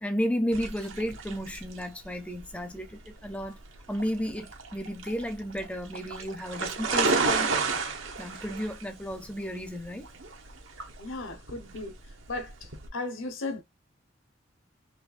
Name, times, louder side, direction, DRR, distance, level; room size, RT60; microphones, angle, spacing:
voice 1, 0.0-3.6 3.9-7.5 8.2-10.1, equal, 5° left, 0.5 m, -33 dB
sound 1, 0.5-12.9, right 4 dB, 85° right, 1.1 m, -32 dB
voice 2, 11.0-11.9 12.3-13.6, left 2 dB, 80° left, 1.1 m, -36 dB
4.4 x 3.1 x 2.4 m
head